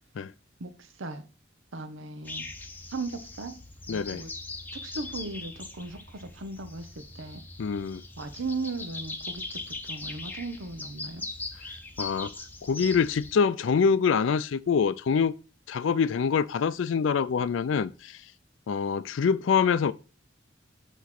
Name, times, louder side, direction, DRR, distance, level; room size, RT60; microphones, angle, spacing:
voice 1, 0.6-1.2 1.7-2.5 2.8-3.5 3.9-4.3 4.7-7.4 8.2-11.3, right 3 dB, 90° right, 0.8 m, -37 dB
sound 1, 2.2-13.3, left 3 dB, 10° left, 0.7 m, -40 dB
voice 2, 3.9-4.2 7.6-8.0 12.0-12.3 12.6-15.3 15.7-18.1 18.7-19.9, left 6 dB, 80° left, 0.4 m, -25 dB
8.0 x 3.1 x 5.8 m
head